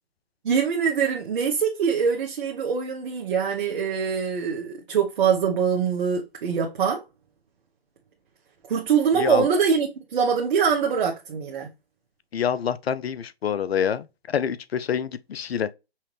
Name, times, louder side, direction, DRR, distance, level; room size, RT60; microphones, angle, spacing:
voice 1, 0.4-7.0 8.7-11.7, right 6 dB, 55° right, 1.0 m, -23 dB
voice 2, 9.1-9.5 12.3-15.7, left 8 dB, 80° left, 0.5 m, -26 dB
5.7 x 2.5 x 3.1 m
figure-of-eight pair, 135°, 31 cm